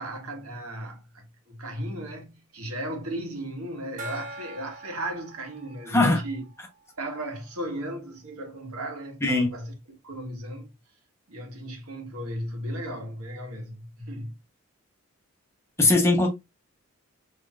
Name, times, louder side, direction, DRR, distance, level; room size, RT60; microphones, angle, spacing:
voice 1, 0.0-6.4 7.0-9.7 10.0-10.7 11.3-14.3, right 1 dB, 90° right, 1.5 m, -35 dB
Gong, 4.0-7.2, right 2 dB, 35° right, 0.7 m, -43 dB
voice 2, 5.9-6.2 9.2-9.5 15.8-16.3, left 2 dB, 10° left, 0.9 m, -20 dB
4.4 x 3.1 x 2.4 m
head